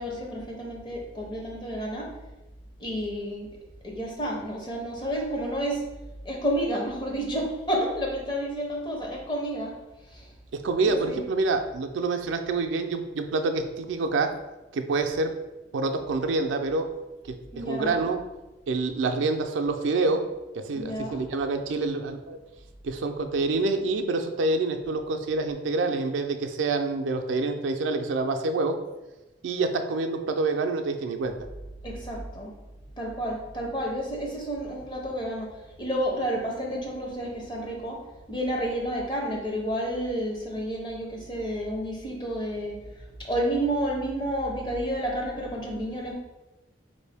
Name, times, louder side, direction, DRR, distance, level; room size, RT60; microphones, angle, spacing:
voice 1, 0.0-2.1 2.8-3.5 3.8-5.8 6.2-9.7 10.1-10.3 10.9-11.2 17.5-18.1 20.7-21.3 31.8-32.5 33.0-35.5 35.8-38.0 38.3-46.1, equal, 25° left, -1 dB, 0.7 m, -30 dB
voice 2, 10.6-14.3 14.7-15.3 15.7-16.9 17.7-18.2 18.7-20.2 20.5-22.4 22.8-28.8 29.4-31.3, right 3 dB, 90° right, 6 dB, 0.4 m, -27 dB
4.4 x 2.6 x 3.4 m, 1.1 s
head